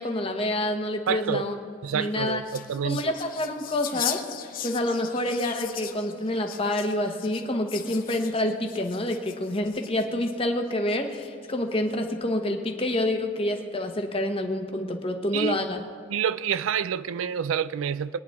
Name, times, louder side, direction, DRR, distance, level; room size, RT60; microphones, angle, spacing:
voice 1, 0.0-1.6 1.9-2.4 2.8-4.2 4.6-15.8, left 1 dB, 30° left, 1.0 m, -27 dB
voice 2, 1.1-1.4 1.8-3.1 15.3-15.6 16.1-18.2, right 7 dB, 85° right, 0.4 m, -28 dB
sound 1, 1.9-10.3 10.9-11.5, left 10 dB, 45° left, 0.6 m, -38 dB
21.5 x 10.0 x 3.6 m
head